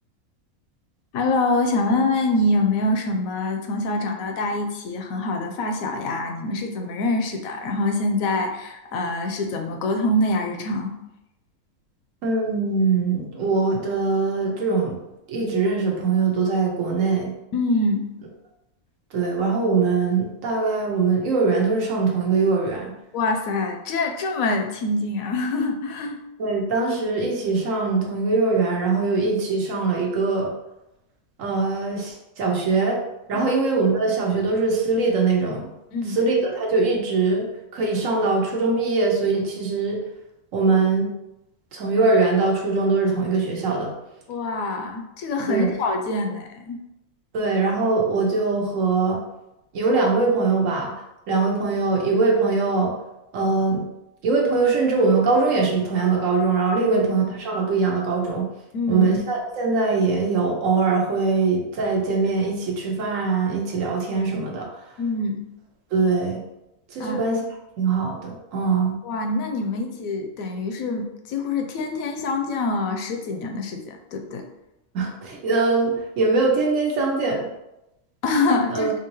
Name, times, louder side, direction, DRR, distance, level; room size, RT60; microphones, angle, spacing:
voice 1, 1.1-10.9 17.5-18.1 23.1-26.2 33.3-33.5 35.9-36.2 44.3-46.8 56.8-57.0 58.7-59.1 65.0-65.4 67.0-67.3 69.0-74.4 78.2-78.9, left 2 dB, 75° left, 4 dB, 1.0 m, -25 dB
voice 2, 12.2-15.0 15.3-17.3 19.1-22.9 26.4-30.5 31.4-33.0 33.3-35.7 36.1-37.5 37.7-40.0 40.5-41.1 41.7-43.9 45.5-45.7 47.3-49.2 49.7-50.9 51.3-52.9 53.3-53.8 54.2-58.5 58.9-64.7 65.9-66.4 66.9-67.4 67.8-69.0 74.9-77.5 78.7-78.9, right 4 dB, 70° right, -1 dB, 1.1 m, -22 dB
3.7 x 2.7 x 3.0 m, 0.90 s
omnidirectional pair, 1.5 m